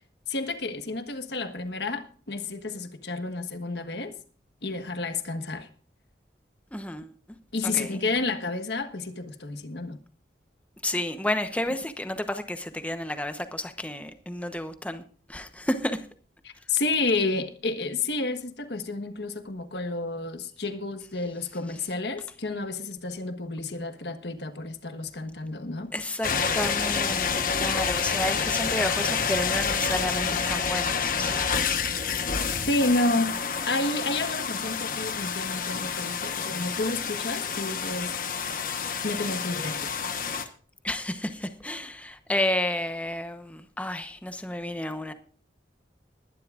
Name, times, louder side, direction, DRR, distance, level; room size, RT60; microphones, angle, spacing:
voice 1, 0.3-4.1 4.6-5.7 7.5-10.0 16.4-25.9 32.6-33.3 33.7-38.1 39.0-39.9, left 3 dB, 70° left, 1.4 m, -30 dB
voice 2, 6.7-7.1 7.6-8.0 10.8-15.0 15.3-16.1 25.9-31.7 32.5-32.7 40.8-45.1, left 1 dB, 10° left, 1.0 m, -31 dB
sound 1, 26.2-40.4, left 6 dB, 50° left, 1.2 m, -28 dB
21.0 x 11.5 x 2.5 m
head